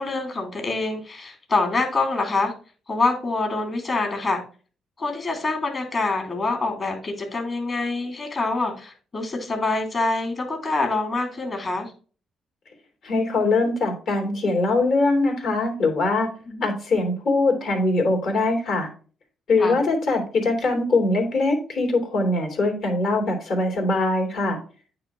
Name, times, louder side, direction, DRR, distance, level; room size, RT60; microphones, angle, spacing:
voice 1, 0.0-2.5 2.9-4.4 5.0-11.9 16.5-16.6 19.6-19.8, left 3 dB, 40° left, 3 dB, 2.6 m, -25 dB
voice 2, 13.0-16.3 16.6-18.9 19.5-24.6, left 2 dB, 65° left, 2 dB, 2.9 m, -22 dB
9.1 x 3.0 x 5.9 m, 0.39 s
cardioid pair, 90°, 0 cm